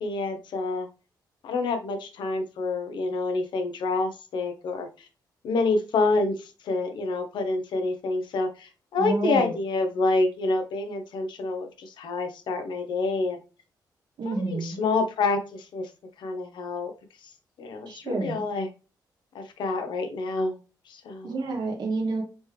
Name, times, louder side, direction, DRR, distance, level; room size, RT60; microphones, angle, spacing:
voice 1, 0.0-0.9 1.4-5.1 5.4-13.4 14.3-15.9 16.2-16.9 17.2-17.3 17.6-18.7 19.3-20.6 20.9-21.3, left 3 dB, 90° left, 6 dB, 0.8 m, -28 dB
voice 2, 9.0-9.5 14.2-14.8 17.9-18.4 21.2-22.2, right 3 dB, 65° right, 1 dB, 1.2 m, -29 dB
4.2 x 3.2 x 3.2 m, 0.33 s
wide cardioid pair, 135°, 8 cm